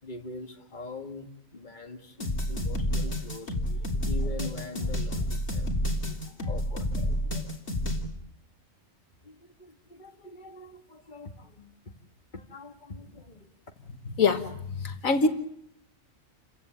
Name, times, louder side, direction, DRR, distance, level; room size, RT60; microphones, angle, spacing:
voice 1, 0.0-5.7 6.1-7.6 9.2-11.9 12.3-13.5, left 3 dB, 35° left, 2.1 m, -43 dB
sound 1, 2.2-8.0, equal, 55° left, 3.6 m, -29 dB
voice 2, 14.2-15.3, left 4 dB, 80° left, 2.0 m, -24 dB
30.0 x 16.0 x 9.1 m
omnidirectional pair, 1.4 m